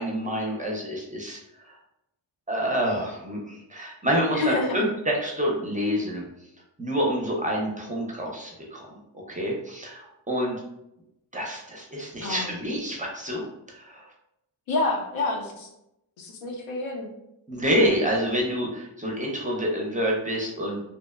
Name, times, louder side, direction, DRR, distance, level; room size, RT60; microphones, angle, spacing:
voice 1, 0.0-1.4 2.5-6.2 6.8-8.9 9.1-10.6 11.3-13.4 13.7-14.1 17.5-20.8, equal, 15° right, -2 dB, 0.5 m, -27 dB
voice 2, 4.3-4.8 12.2-12.5 14.7-15.7 16.2-17.1, left 3 dB, 80° left, 1 dB, 0.6 m, -28 dB
2.8 x 2.0 x 2.3 m, 0.86 s
wide cardioid pair, 95°, 47 cm